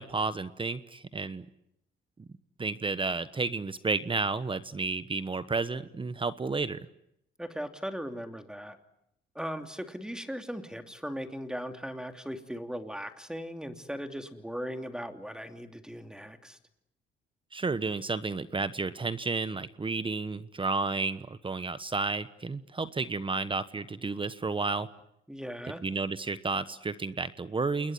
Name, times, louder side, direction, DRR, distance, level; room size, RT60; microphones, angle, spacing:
voice 1, 0.0-1.4 2.6-6.8 17.5-24.9 25.8-27.9, right 4 dB, 25° right, 14 dB, 1.2 m, -31 dB
voice 2, 7.4-8.8 9.3-16.6 25.3-25.8, equal, 5° right, 7 dB, 2.9 m, -38 dB
28.5 x 21.0 x 9.6 m, 0.80 s
cardioid pair, 90°, 20 cm